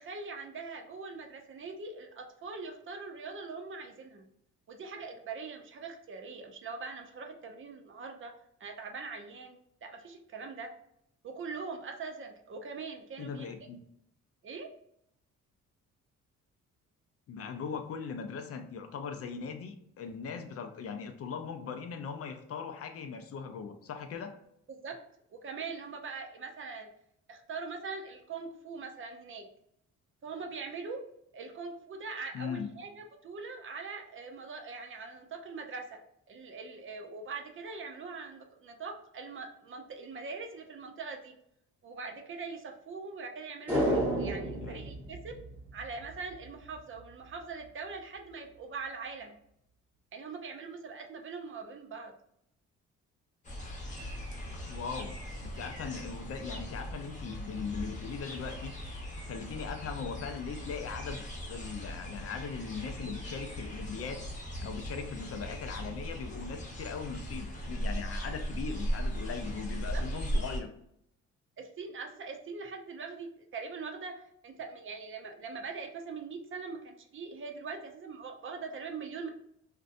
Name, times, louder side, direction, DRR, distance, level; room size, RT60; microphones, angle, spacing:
voice 1, 0.0-4.3 4.7-8.3 8.6-10.7 11.2-13.5 14.4-14.7 24.7-25.0 25.3-26.9 27.3-29.5 30.2-31.0 31.3-36.0 36.3-41.3 41.8-45.4 45.7-49.4 50.1-52.1 69.9-70.0 71.6-74.1 74.4-79.3, right 4 dB, 45° right, 4 dB, 0.5 m, -42 dB
voice 2, 13.2-13.8 17.3-24.4 32.3-32.7 44.6-44.8 54.7-58.7 59.2-64.2 64.6-70.7, left 6 dB, 50° left, 6 dB, 0.4 m, -39 dB
sound 1, 43.7-46.2 46.4-46.5, right 1 dB, 5° right, 1.0 m, -31 dB
sound 2, 53.4-70.6, equal, 25° left, 0.8 m, -38 dB
2.6 x 2.1 x 2.5 m, 0.73 s
cardioid pair, 90°, 30 cm